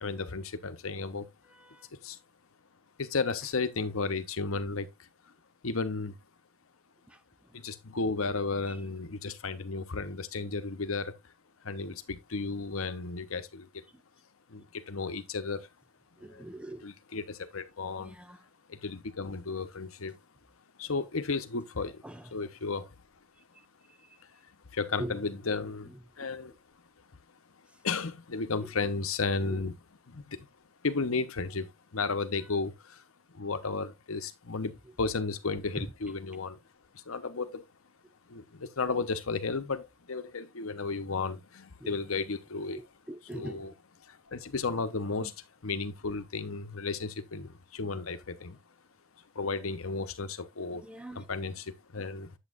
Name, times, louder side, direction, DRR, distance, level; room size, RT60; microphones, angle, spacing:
voice 1, 0.0-1.3 2.0-2.2 3.0-4.9 5.6-6.1 7.5-11.1 11.6-13.7 14.5-15.7 16.3-16.5 16.8-18.1 18.7-20.2 20.8-22.0 22.3-22.9 24.7-26.5 27.8-29.7 30.1-30.4 30.8-33.0 33.3-36.6 37.1-37.6 38.3-42.8 43.3-43.7 44.1-45.3 45.6-48.6 49.3-50.8 51.1-52.3, left 4 dB, 85° left, 1.0 m, -33 dB
voice 2, 1.5-1.9 7.1-7.2 7.5-7.6 8.7-8.8 16.2-16.8 18.0-18.4 22.0-22.3 24.0-24.2 25.0-25.2 25.9-26.3 29.4-29.6 35.8-35.9 41.8-42.0 43.1-43.7 45.2-45.3 50.7-51.2, right 1 dB, 5° right, 0.6 m, -42 dB
8.3 x 8.1 x 2.5 m
head